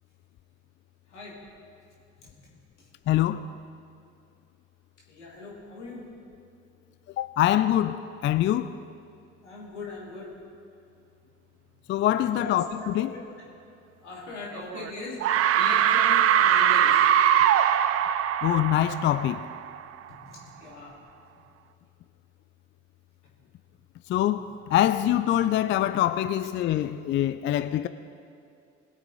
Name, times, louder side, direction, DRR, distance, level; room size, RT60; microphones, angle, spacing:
voice 1, 3.1-3.4 7.2-8.7 11.9-13.2 18.4-19.4 24.1-24.4 24.7-27.9, left 12 dB, 35° left, 0.4 m, -24 dB
voice 2, 5.1-6.0 9.4-10.3 12.3-12.5 13.0-13.2 14.0-17.0 20.3-21.0, left 3 dB, 80° left, 2.6 m, -40 dB
sound 1, 14.6-14.9 15.2-19.8, right 10 dB, 45° right, 0.6 m, -22 dB
20.5 x 8.1 x 4.0 m
figure-of-eight pair, 50°, 35 cm